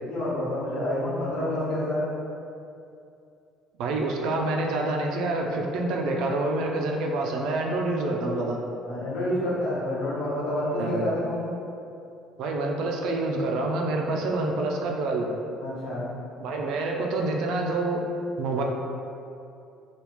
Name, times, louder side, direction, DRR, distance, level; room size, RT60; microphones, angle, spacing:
voice 1, 0.0-2.1 8.9-11.4 15.6-16.1, left 1 dB, 60° left, -8 dB, 1.1 m, -28 dB
voice 2, 3.8-8.6 10.8-11.0 12.4-15.3 16.4-18.0 18.4-18.6, right 2 dB, 65° right, 1 dB, 0.4 m, -27 dB
3.3 x 2.3 x 3.0 m, 2.6 s
cardioid pair, 150°, 0 cm